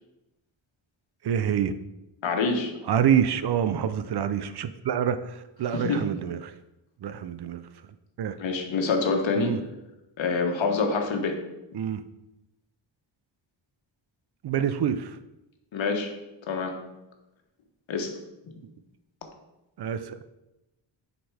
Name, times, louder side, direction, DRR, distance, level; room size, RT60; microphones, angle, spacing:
voice 1, 1.2-1.7 2.9-6.5 7.0-7.6 8.2-8.4 9.4-9.6 11.7-12.0 14.4-15.2 19.8-20.2, right 8 dB, 60° right, 12 dB, 0.5 m, -26 dB
voice 2, 2.2-2.7 5.7-6.1 8.4-9.6 10.2-11.4 15.7-16.1 16.5-16.8 17.9-18.1, left 4 dB, 80° left, 3 dB, 1.3 m, -26 dB
6.2 x 5.2 x 4.8 m, 0.96 s
wide cardioid pair, 145°, 45 cm